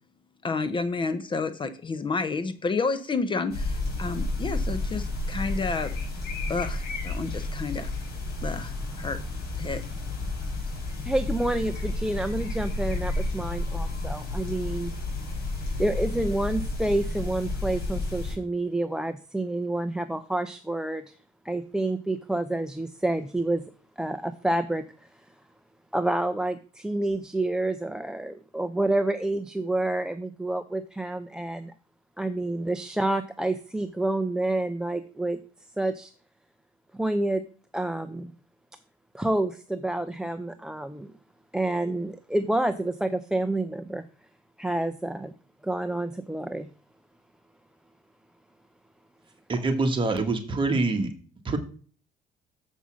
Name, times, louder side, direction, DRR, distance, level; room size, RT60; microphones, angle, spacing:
voice 1, 0.4-5.9 6.5-7.9 8.4-8.7 9.0-9.2 9.6-9.8, left 4 dB, 30° left, 12 dB, 0.8 m, -30 dB
sound 1, 3.5-18.3, left 2 dB, 65° left, 5.0 m, -31 dB
voice 2, 11.1-14.9 15.8-21.1 21.4-23.6 24.0-24.8 25.9-31.7 32.2-35.4 35.8-36.1 36.9-37.4 37.7-38.3 39.1-41.1 41.5-44.0 44.6-45.3 45.6-46.7, right 2 dB, 5° right, 9 dB, 0.6 m, -28 dB
voice 3, 49.5-51.1 51.4-51.6, right 3 dB, 30° right, 4 dB, 1.7 m, -25 dB
7.2 x 5.4 x 6.3 m, 0.41 s
cardioid pair, 110°, 17 cm